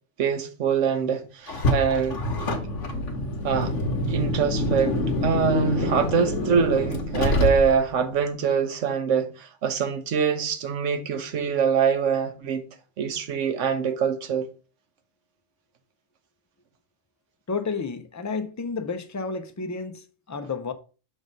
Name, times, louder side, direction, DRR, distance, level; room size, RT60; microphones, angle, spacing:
voice 1, 0.2-2.5 3.4-3.7 4.1-12.6 13.0-14.5, right 6 dB, 90° right, 1.2 m, -24 dB
Car, 1.5-8.0, left 1 dB, 80° left, 1.4 m, -26 dB
voice 2, 17.5-20.7, left 4 dB, 25° left, 0.3 m, -31 dB
6.2 x 3.6 x 5.3 m
omnidirectional pair, 1.2 m